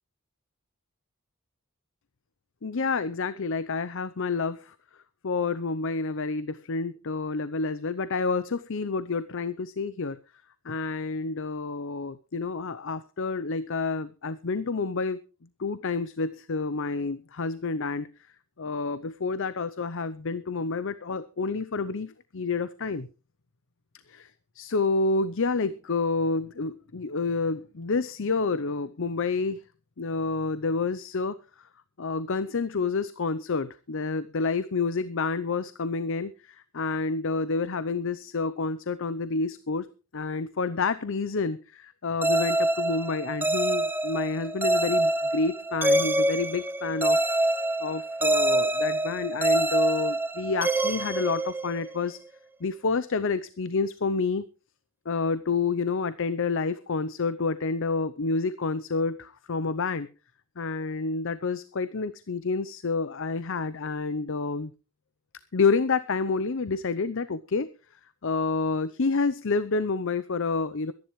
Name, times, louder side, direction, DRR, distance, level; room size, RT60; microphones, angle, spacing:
voice 1, 2.6-4.7 5.2-10.2 10.6-15.2 15.6-18.1 18.6-23.1 24.1-29.6 30.0-31.4 32.0-47.2 47.8-52.2 52.6-54.5 55.1-60.1 60.6-64.7 65.5-67.7 68.2-70.9, left 4 dB, 65° left, 15 dB, 0.7 m, -29 dB
sound 1, 42.2-52.0, right 1 dB, 10° right, 0.7 m, -26 dB
23.5 x 10.5 x 3.2 m, 0.32 s
head